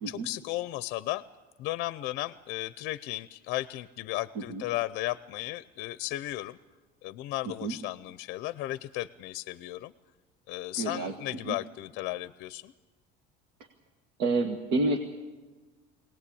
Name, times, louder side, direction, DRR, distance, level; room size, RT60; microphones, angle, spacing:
voice 1, 0.1-1.2 1.6-6.6 7.0-9.9 10.5-12.7, left 17 dB, 55° left, 15 dB, 0.6 m, -35 dB
voice 2, 7.5-7.8 10.8-11.1 11.5-11.6 14.2-15.0, right 3 dB, 60° right, 3 dB, 1.8 m, -29 dB
23.0 x 18.5 x 8.6 m, 1.3 s
cardioid pair, 160°, 20 cm